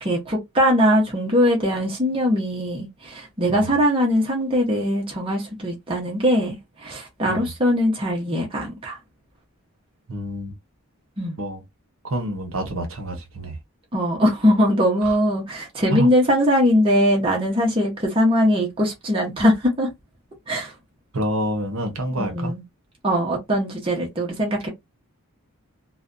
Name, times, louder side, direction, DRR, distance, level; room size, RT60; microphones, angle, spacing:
voice 1, 0.0-9.0 11.2-11.4 13.9-19.9 20.5-20.7 22.2-22.6 23.0-24.7, equal, 25° right, 0.7 m, -21 dB
voice 2, 10.1-10.5 11.4-11.6 12.0-13.6 15.0-15.2 15.9-16.1 21.1-22.5, equal, 65° right, 0.8 m, -27 dB
2.5 x 2.1 x 2.4 m
head